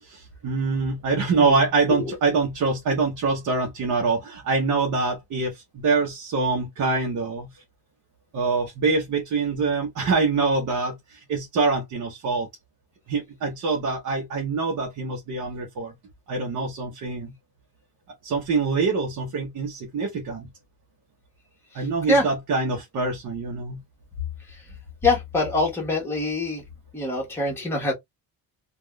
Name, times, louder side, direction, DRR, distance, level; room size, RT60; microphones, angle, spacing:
voice 1, 0.0-7.6 8.3-12.5 13.1-15.9 16.3-17.3 18.2-20.5 21.7-23.8, right 4 dB, 50° right, 0.9 m, -25 dB
voice 2, 25.0-26.6 26.9-27.9, left 2 dB, 5° left, 1.1 m, -24 dB
3.5 x 2.4 x 2.2 m
cardioid pair, 170°, 38 cm